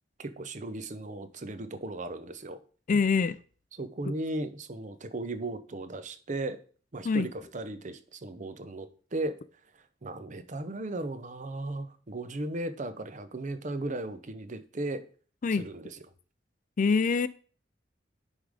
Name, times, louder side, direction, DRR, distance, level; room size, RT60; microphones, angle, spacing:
voice 1, 0.2-2.6 3.7-6.6 6.9-9.4 9.7-15.0 15.5-16.0, right 2 dB, 40° right, 0.7 m, -36 dB
voice 2, 2.9-3.4 7.0-7.3 15.4-15.6 16.8-17.3, left 5 dB, 45° left, 0.4 m, -24 dB
9.8 x 3.7 x 4.9 m
head